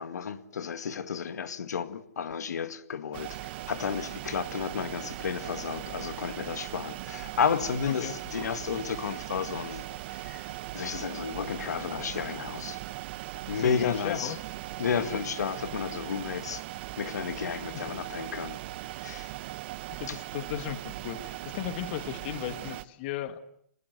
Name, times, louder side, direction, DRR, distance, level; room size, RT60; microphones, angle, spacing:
voice 1, 0.0-12.8 13.5-14.4 14.8-16.6 17.0-18.6 19.0-19.3 20.1-20.2, left 6 dB, 85° left, 1.9 m, -32 dB
sound 1, 3.1-22.8, right 16 dB, 40° right, 1.0 m, -39 dB
voice 2, 13.5-14.4 19.9-23.4, left 12 dB, 40° left, 1.7 m, -36 dB
26.0 x 20.5 x 8.1 m
hypercardioid pair, 155°, 9 cm